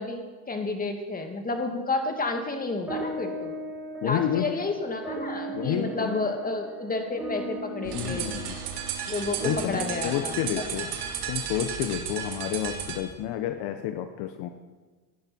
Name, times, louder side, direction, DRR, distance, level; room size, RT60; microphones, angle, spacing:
voice 1, 0.0-3.5 4.0-8.3 9.1-10.4, left 3 dB, 20° left, 4 dB, 2.2 m, -31 dB
sound 1, 2.9-11.5, right 1 dB, 5° right, 4.4 m, -38 dB
voice 2, 4.0-4.6 5.5-6.3 7.8-8.6 9.4-10.9 11.3-14.5, left 11 dB, 60° left, 8 dB, 1.0 m, -30 dB
sound 2, 7.8-13.0, right 8 dB, 65° right, 2.3 m, -34 dB
17.5 x 10.5 x 4.5 m, 1.3 s
supercardioid pair, 90°, 44 cm